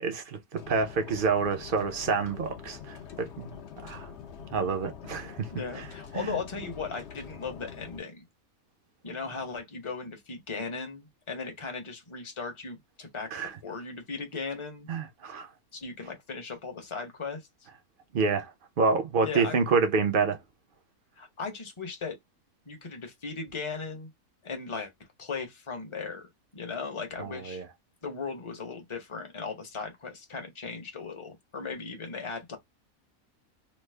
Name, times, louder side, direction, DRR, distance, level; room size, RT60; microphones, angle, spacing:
voice 1, 0.0-3.6 3.8-4.1 4.5-5.5 5.8-5.9 6.1-6.4 13.3-13.5 14.9-15.5 18.1-18.5 18.8-20.4 27.2-27.7, right 4 dB, 55° right, 0.6 m, -28 dB
sound 1, 0.6-8.0, left 7 dB, 60° left, 0.8 m, -45 dB
voice 2, 5.5-8.2 9.0-13.3 13.6-14.9 15.7-17.4 19.2-19.6 21.2-22.1 22.7-24.1 24.4-24.9 25.2-26.2 26.5-27.6 28.0-32.6, left 4 dB, 30° left, 0.6 m, -37 dB
3.1 x 2.0 x 3.2 m
omnidirectional pair, 1.5 m